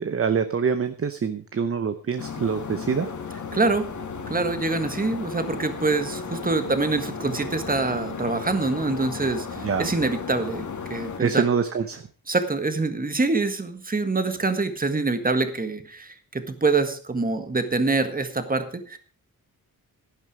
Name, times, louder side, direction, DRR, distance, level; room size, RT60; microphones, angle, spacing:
voice 1, 0.0-3.1 9.6-9.9 11.2-12.0, right 6 dB, 40° right, 9 dB, 0.8 m, -25 dB
sound 1, 2.2-11.2, left 6 dB, 55° left, 1.8 m, -35 dB
voice 2, 3.5-3.9 4.3-11.4 12.3-19.0, right 3 dB, 25° right, 9 dB, 1.6 m, -25 dB
11.0 x 11.0 x 4.8 m, 0.41 s
wide cardioid pair, 110°, 36 cm